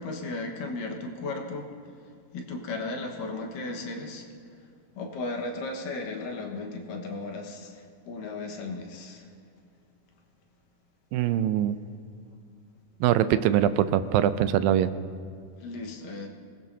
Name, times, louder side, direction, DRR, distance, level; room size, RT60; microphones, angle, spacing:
voice 1, 0.0-1.7 2.3-4.3 4.9-9.3 15.6-16.3, left 3 dB, 70° left, 1 dB, 2.9 m, -35 dB
voice 2, 11.1-11.8 13.0-14.9, right 11 dB, 85° right, 12 dB, 2.3 m, -23 dB
25.5 x 19.5 x 2.8 m, 2.2 s
omnidirectional pair, 4.1 m